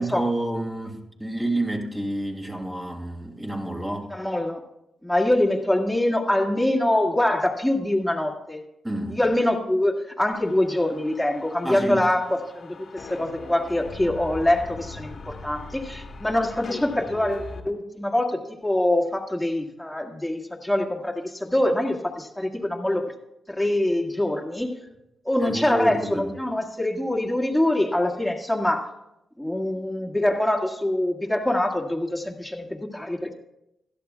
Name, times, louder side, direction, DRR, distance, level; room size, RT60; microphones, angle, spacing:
voice 1, 0.0-4.1 8.8-9.2 11.6-12.0 25.4-26.3, right 1 dB, 20° right, 2 dB, 2.6 m, -29 dB
voice 2, 4.1-4.6 5.0-8.6 9.1-23.0 23.5-24.8 25.3-28.9 29.4-33.3, left 1 dB, 5° left, -1 dB, 1.9 m, -24 dB
sound 1, 10.3-17.6, left 3 dB, 60° left, 1.4 m, -41 dB
16.5 x 11.5 x 2.4 m, 0.86 s
supercardioid pair, 45°, 0 cm